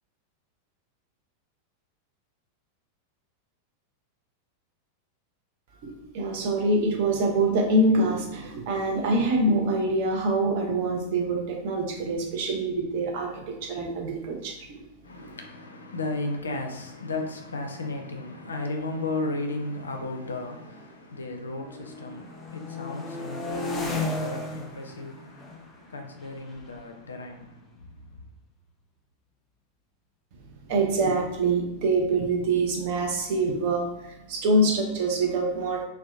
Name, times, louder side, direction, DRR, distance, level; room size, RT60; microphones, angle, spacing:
voice 1, 5.8-14.5 30.7-33.8 34.3-35.9, right 2 dB, 50° right, 0.5 m, -25 dB
voice 2, 15.0-27.9, left 2 dB, 75° left, 0.4 m, -35 dB
sound 1, 15.8-15.9 16.1-16.5 17.2-21.2 21.5-28.2, left 2 dB, 15° left, 0.5 m, -37 dB
2.7 x 2.2 x 2.3 m
figure-of-eight pair, 90°, 0 cm